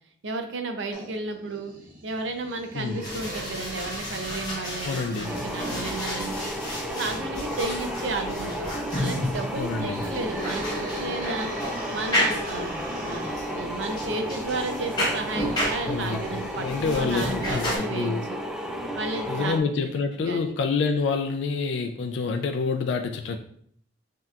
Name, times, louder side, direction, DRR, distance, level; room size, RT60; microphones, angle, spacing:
voice 1, 0.2-1.7 2.0-6.5 6.9-11.5 11.9-18.4 18.9-19.5 20.2-20.5, right 3 dB, 75° right, 6 dB, 0.5 m, -33 dB
sound 1, 0.9-6.1 9.7-17.2, right 1 dB, 45° right, 0.8 m, -40 dB
voice 2, 2.7-3.0 4.8-5.3 9.5-10.0 15.9-16.2 16.5-18.2 19.3-23.4, left 4 dB, 70° left, 6 dB, 0.3 m, -27 dB
sound 2, 3.0-17.8, left 1 dB, 20° left, 1.1 m, -33 dB
sound 3, 5.2-19.6, equal, 5° right, 0.4 m, -33 dB
5.5 x 2.8 x 2.4 m, 0.67 s
head